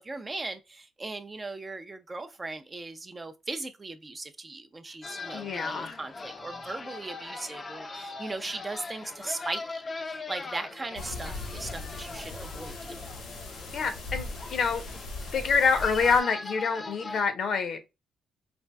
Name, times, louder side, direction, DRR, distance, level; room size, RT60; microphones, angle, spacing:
voice 1, 0.0-13.0, right 3 dB, 25° right, 0.4 m, -38 dB
sound 1, 5.0-17.2, left 3 dB, 30° left, 0.4 m, -41 dB
voice 2, 5.3-6.0 13.7-14.8 15.3-17.8, left 5 dB, 60° left, 0.7 m, -26 dB
sound 2, 10.9-16.2, left 2 dB, 85° left, 1.1 m, -39 dB
4.3 x 2.4 x 2.3 m
cardioid pair, 90°, 0 cm